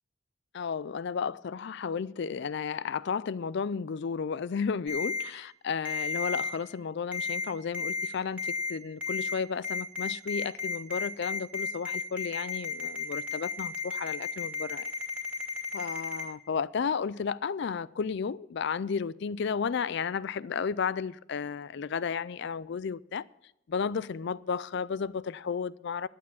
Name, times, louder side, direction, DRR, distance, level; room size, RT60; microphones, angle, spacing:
voice 1, 0.5-14.9 15.7-23.2 23.7-26.1, left 6 dB, 55° left, 0.4 m, -33 dB
Ringtone, 4.9-5.2 5.8-6.5 7.1-7.4 7.7-8.1 8.4-8.7 9.0-9.3 9.6-16.2, left 5 dB, 5° right, 2.4 m, -33 dB
11.5 x 8.5 x 7.1 m
head